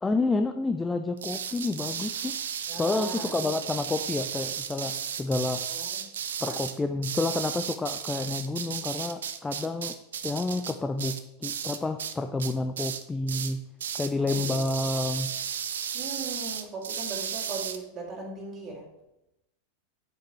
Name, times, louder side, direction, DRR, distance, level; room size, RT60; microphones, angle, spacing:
voice 1, 0.0-2.3 2.8-5.6 6.4-9.9 10.2-13.6 13.9-15.3, left 3 dB, 10° left, 8 dB, 0.4 m, -29 dB
sound 1, 1.2-12.1 12.4-13.0 13.3-13.5 13.8-17.8, right 8 dB, 65° right, 0.6 m, -34 dB
voice 2, 2.7-3.7 5.7-6.0 6.5-6.6 14.2-14.6 15.6-18.9, right 3 dB, 25° right, -2 dB, 2.7 m, -39 dB
8.0 x 8.0 x 3.1 m, 0.87 s
figure-of-eight pair, 90°, 0 cm